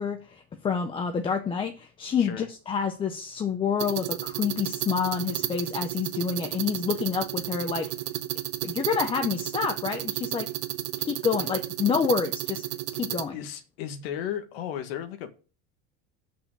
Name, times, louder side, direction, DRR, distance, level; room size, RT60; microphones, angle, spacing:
voice 1, 0.0-7.9 8.6-10.5 11.0-12.6 12.9-13.4, left 6 dB, 15° left, 6 dB, 0.6 m, -28 dB
sound 1, 3.8-13.2, right 15 dB, 80° right, 1.1 m, -32 dB
voice 2, 13.3-15.3, left 10 dB, 90° left, 8 dB, 1.5 m, -34 dB
6.7 x 5.6 x 7.2 m, 0.36 s
cardioid pair, 165°, 29 cm